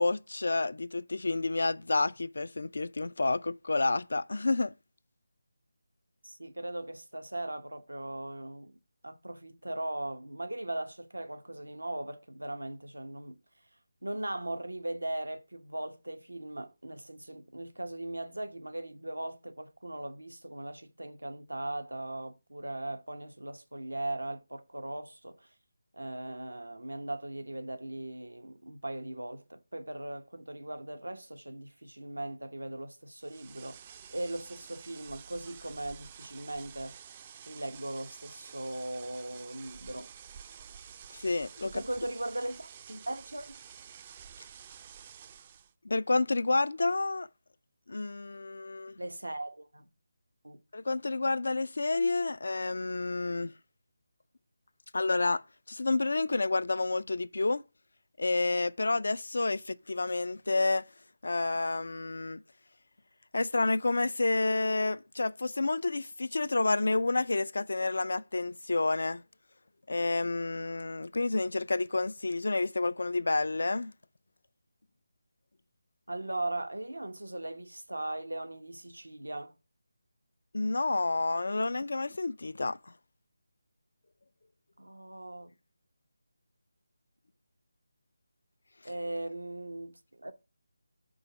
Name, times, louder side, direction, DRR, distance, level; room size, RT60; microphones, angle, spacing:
voice 1, 0.0-4.7 41.1-41.8 45.8-47.3 47.9-49.0 50.7-53.5 54.9-55.4 55.7-57.6 58.2-60.9 61.2-62.4 63.3-69.2 69.9-73.9 80.5-82.8, left 3 dB, 65° left, 0.4 m, -29 dB
voice 2, 6.2-8.8 9.0-13.4 14.0-25.5 25.9-37.0 37.5-40.1 41.6-43.6 49.0-49.9 50.4-50.6 76.1-79.5 84.8-85.5 88.8-90.3, right 1 dB, 90° right, 1.0 m, -39 dB
sound 1, 33.2-45.7, right 8 dB, 25° right, 0.4 m, -50 dB
5.3 x 4.0 x 5.8 m
figure-of-eight pair, 160°, 0 cm